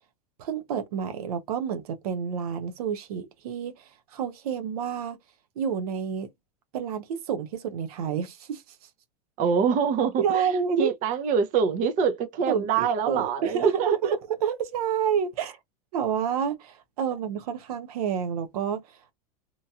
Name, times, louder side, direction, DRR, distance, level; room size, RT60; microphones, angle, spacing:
voice 1, 0.4-5.2 5.6-6.3 6.7-8.8 10.2-10.9 12.5-15.6 15.9-19.0, right 7 dB, 75° right, 0.8 m, -29 dB
voice 2, 9.4-10.5 10.8-14.2, right 6 dB, 45° right, 0.7 m, -25 dB
3.0 x 2.6 x 2.3 m
supercardioid pair, 115°, 19 cm